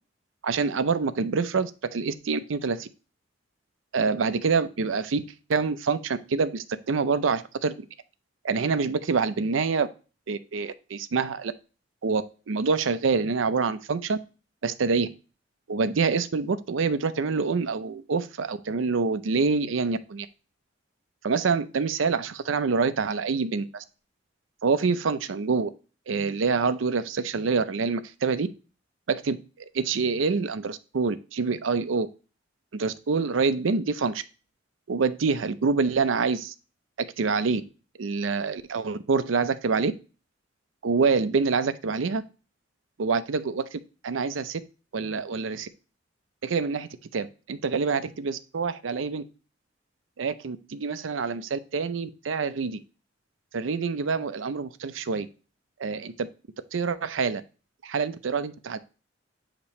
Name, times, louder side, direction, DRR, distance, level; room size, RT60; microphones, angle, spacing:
voice 1, 0.4-2.9 3.9-5.2 5.5-7.9 8.4-9.9 10.3-11.5 12.0-14.2 14.6-15.1 15.7-20.3 21.2-23.8 24.6-25.7 26.1-28.5 29.1-29.4 29.7-32.1 32.7-34.2 34.9-36.5 37.0-37.6 38.0-39.9 40.8-42.2 43.0-44.6 44.9-45.7 46.4-49.2 50.2-52.8 53.5-55.3 55.8-56.3 56.7-57.4 57.8-58.8, right 4 dB, 80° right, 12 dB, 0.5 m, -26 dB
8.7 x 2.9 x 4.1 m, 0.34 s
head